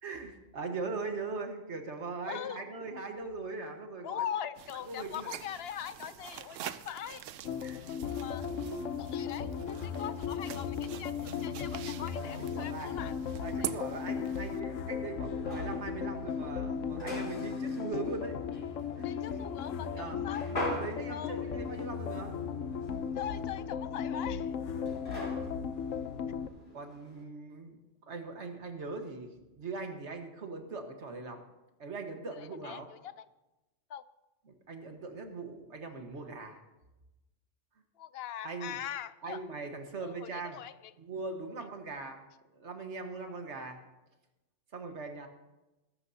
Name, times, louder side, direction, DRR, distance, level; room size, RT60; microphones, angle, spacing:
voice 1, 0.0-4.3 4.9-5.4 7.6-7.8 8.5-8.9 12.4-12.9 13.4-18.4 19.0-19.1 19.9-20.2 20.4-22.4 24.8-25.4 26.7-27.8 28.1-31.4 31.8-32.9 34.5-36.6 38.4-38.8 39.2-40.6 41.0-42.2 42.5-43.8 44.7-45.3, right 3 dB, 65° right, 4 dB, 1.7 m, -40 dB
voice 2, 2.2-2.7 4.0-7.3 8.2-8.5 9.0-13.7 19.0-20.5 21.1-21.5 23.1-24.5 32.4-33.3 33.9-34.0 38.0-39.4 40.0-40.9, left 10 dB, 60° left, 14 dB, 0.8 m, -41 dB
sound 1, 4.5-14.6, right 11 dB, 85° right, 1.0 m, -45 dB
sound 2, 7.4-26.5, left 7 dB, 85° left, 1.1 m, -36 dB
sound 3, 13.5-27.2, equal, 45° left, 2.6 m, -45 dB
20.5 x 12.0 x 2.8 m, 1.0 s
omnidirectional pair, 1.3 m